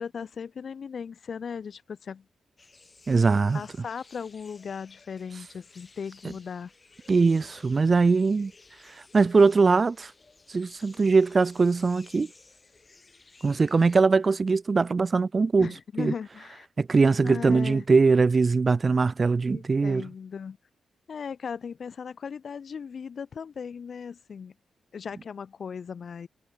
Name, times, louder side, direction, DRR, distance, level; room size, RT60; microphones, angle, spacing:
voice 1, 0.0-2.3 3.5-6.7 15.6-16.7 17.2-17.9 19.5-20.6 21.1-24.5 24.9-26.3, left 6 dB, 65° left, 1.6 m, -37 dB
sound 1, 2.6-14.0, left 3 dB, 35° left, 7.4 m, -56 dB
voice 2, 3.1-3.6 7.1-8.5 9.1-10.1 10.5-12.3 13.4-15.7 16.0-16.1 16.8-20.0, right 4 dB, 45° right, 0.3 m, -21 dB
cardioid pair, 55°, 0 cm